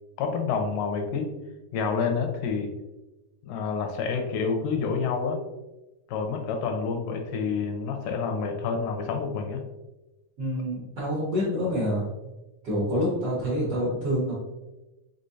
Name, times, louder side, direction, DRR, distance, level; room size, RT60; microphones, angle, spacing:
voice 1, 0.2-1.3 1.7-2.7 3.4-5.4 6.1-9.6, left 5 dB, 80° left, 4 dB, 2.1 m, -28 dB
voice 2, 10.4-12.3 12.6-14.3, equal, 60° right, -7 dB, 1.6 m, -27 dB
5.5 x 3.3 x 2.7 m, 1.0 s
omnidirectional pair, 4.0 m